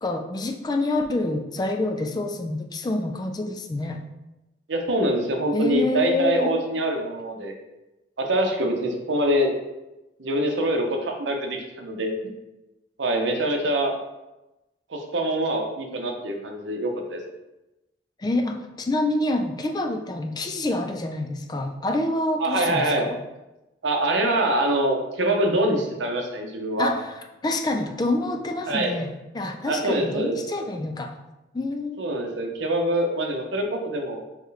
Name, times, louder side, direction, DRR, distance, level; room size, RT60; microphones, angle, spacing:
voice 1, 0.0-4.0 5.5-6.5 18.2-23.2 26.8-27.1 27.4-31.2 31.5-32.0, left 2 dB, 20° left, 5 dB, 0.3 m, -27 dB
voice 2, 4.7-7.6 8.2-9.5 10.2-12.3 13.0-13.9 14.9-17.2 22.4-23.1 23.8-26.9 28.7-29.0 29.6-30.4 32.0-34.2, right 1 dB, 85° right, 3 dB, 0.7 m, -24 dB
4.4 x 3.0 x 3.3 m, 0.99 s
head